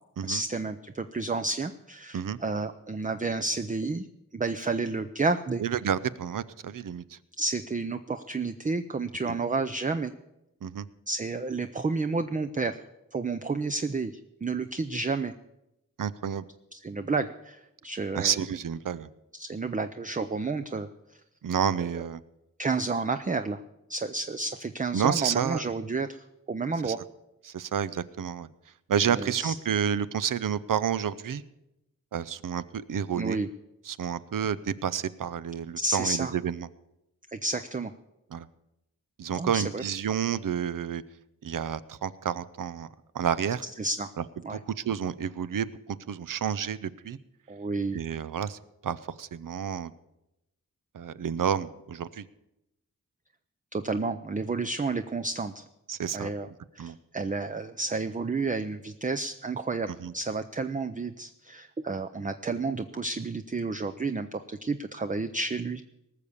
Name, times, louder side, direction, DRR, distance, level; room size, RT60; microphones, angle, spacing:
voice 1, 0.2-4.1 4.3-5.6 7.4-10.1 11.1-12.8 13.1-14.1 14.4-15.3 16.7-18.4 19.3-20.9 22.6-23.6 23.9-27.0 29.1-29.5 33.2-33.5 35.8-36.3 37.3-37.9 39.3-39.8 43.8-44.1 44.4-44.6 47.5-48.0 53.7-55.7 56.1-56.5 56.7-65.8, right 3 dB, 25° right, 9 dB, 0.5 m, -31 dB
voice 2, 5.6-7.2 10.6-10.9 16.0-16.5 18.1-19.1 21.4-22.2 24.9-25.7 26.8-26.9 27.4-28.5 28.9-31.4 32.1-33.4 33.9-36.7 38.3-38.5 39.2-41.0 41.4-42.9 43.1-43.6 44.5-45.7 46.1-47.2 47.9-49.9 50.9-52.2 55.9-56.3 56.8-57.0 60.0-60.1, right 8 dB, 75° right, 16 dB, 0.6 m, -30 dB
19.0 x 6.8 x 7.1 m, 0.90 s
wide cardioid pair, 75°, 32 cm